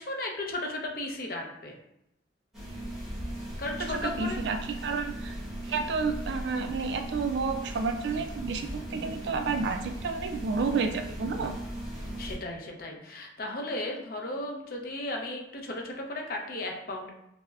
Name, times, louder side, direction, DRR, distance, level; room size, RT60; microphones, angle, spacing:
voice 1, 0.0-1.8 3.6-4.4 12.2-17.1, left 1 dB, 50° left, 1 dB, 0.6 m, -35 dB
sound 1, 2.5-12.3, right 1 dB, ahead, 1.0 m, -38 dB
voice 2, 3.8-5.4 5.7-11.6, right 4 dB, 65° right, 7 dB, 0.3 m, -30 dB
5.5 x 2.1 x 2.4 m, 0.82 s
head